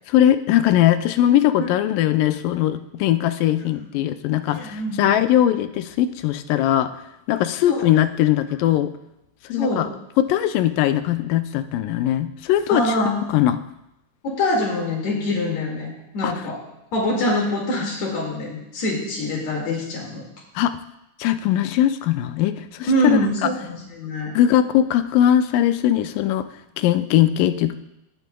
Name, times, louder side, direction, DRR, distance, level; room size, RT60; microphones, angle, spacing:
voice 1, 0.1-6.9 7.3-8.9 9.5-9.9 10.2-12.8 13.3-13.6 16.2-16.3 20.6-20.7 21.2-23.5 24.4-26.5 26.8-27.7, left 12 dB, 85° left, 10 dB, 2.2 m, -20 dB
voice 2, 4.5-5.2 7.7-7.9 9.6-9.8 12.7-13.2 14.2-16.6 16.9-20.3 22.9-24.3, left 1 dB, 60° left, -2 dB, 3.2 m, -24 dB
17.5 x 7.0 x 2.3 m, 0.88 s
omnidirectional pair, 3.8 m